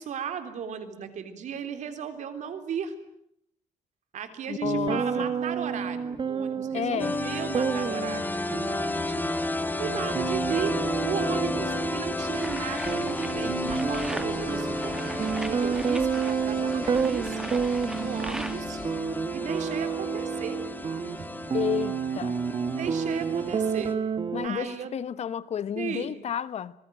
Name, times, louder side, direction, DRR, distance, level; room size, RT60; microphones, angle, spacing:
voice 1, 0.0-2.9 4.1-9.4 9.8-10.8 11.1-15.2 15.5-17.4 18.0-18.8 19.3-20.6 21.2-21.3 22.8-24.0 24.4-24.9 25.8-26.2, right 7 dB, 80° right, 3.6 m, -35 dB
voice 2, 4.5-5.3 6.7-7.2 21.5-22.4 24.3-26.7, left 8 dB, 65° left, 1.1 m, -31 dB
sound 1, 4.6-24.5, right 6 dB, 40° right, 1.6 m, -30 dB
sound 2, 7.0-23.9, left 2 dB, 15° left, 1.7 m, -33 dB
sound 3, 12.2-18.9, right 1 dB, 5° right, 1.9 m, -41 dB
27.0 x 20.5 x 9.2 m
cardioid pair, 130°, 12 cm